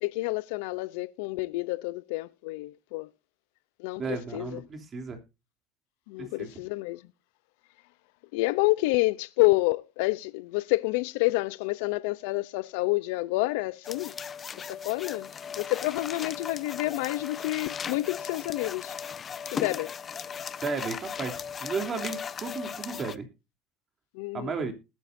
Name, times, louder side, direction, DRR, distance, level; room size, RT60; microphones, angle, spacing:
voice 1, 0.0-3.1 3.8-4.6 6.1-7.0 8.3-14.1 14.5-15.3 15.6-19.0 19.5-19.9 24.1-24.5, left 21 dB, 80° left, 0.5 m, -28 dB
voice 2, 4.0-5.2 6.2-6.5 20.6-23.3 24.3-24.7, right 5 dB, 35° right, 3.0 m, -34 dB
sound 1, 13.8-23.2, left 7 dB, 35° left, 0.9 m, -37 dB
20.0 x 9.4 x 2.6 m
supercardioid pair, 105°, 0 cm